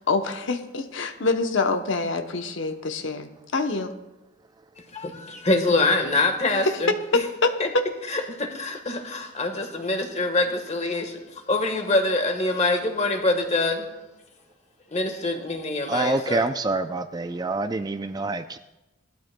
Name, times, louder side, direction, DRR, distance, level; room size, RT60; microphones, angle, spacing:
voice 1, 0.1-3.9 6.6-6.7 7.1-7.8, left 3 dB, 70° left, 7 dB, 0.8 m, -25 dB
voice 2, 4.9-6.9 7.6-7.7 8.1-13.9 14.9-16.5, left 2 dB, 35° left, 5 dB, 1.3 m, -25 dB
voice 3, 15.9-18.6, right 3 dB, 20° right, 10 dB, 0.3 m, -26 dB
18.5 x 12.5 x 2.2 m, 1.0 s
head